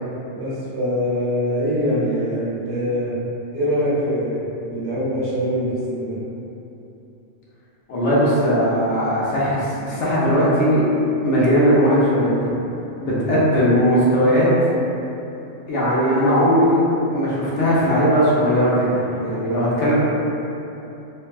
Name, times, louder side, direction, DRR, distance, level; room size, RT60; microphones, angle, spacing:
voice 1, 0.3-3.1 3.5-4.4 4.7-6.2 13.0-13.3, equal, 60° right, -8 dB, 1.0 m, -23 dB
voice 2, 7.9-10.8 11.2-12.4 13.0-14.5 15.7-19.9, equal, 65° left, -8 dB, 1.0 m, -18 dB
3.2 x 2.1 x 2.3 m, 2.9 s
omnidirectional pair, 1.3 m